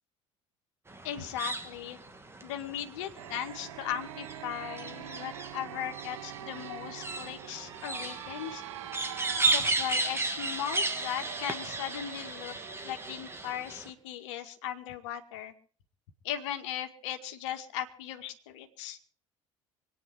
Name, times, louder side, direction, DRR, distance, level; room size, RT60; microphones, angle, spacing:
sound 1, 0.9-13.9, right 2 dB, 15° right, 2.8 m, -35 dB
voice 1, 1.0-2.0 2.4-8.6 9.4-12.6 12.8-15.5 16.2-19.0, left 10 dB, 70° left, 7 dB, 2.0 m, -38 dB
sound 2, 3.2-13.6, right 12 dB, 75° right, 1.1 m, -44 dB
26.0 x 9.8 x 4.7 m, 0.43 s
hypercardioid pair, 65°, 16 cm